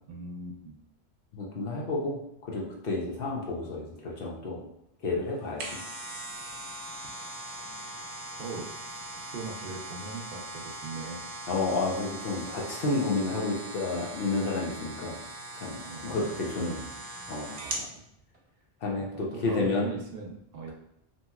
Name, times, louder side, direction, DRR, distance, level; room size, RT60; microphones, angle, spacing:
voice 1, 0.1-0.8 8.4-8.7 9.3-11.2 15.8-16.3 16.6-17.0 17.6-17.8 19.0-20.7, right 3 dB, 65° right, 0 dB, 0.7 m, -40 dB
voice 2, 1.3-4.6 5.0-5.6 11.5-15.2 15.6-16.8 17.3-17.5 18.8-19.8, left 3 dB, 65° left, -2 dB, 0.9 m, -30 dB
sound 1, 5.3-17.9 18.3-18.4, right 1 dB, 85° right, 1.0 m, -40 dB
2.9 x 2.8 x 2.3 m, 0.80 s
omnidirectional pair, 1.1 m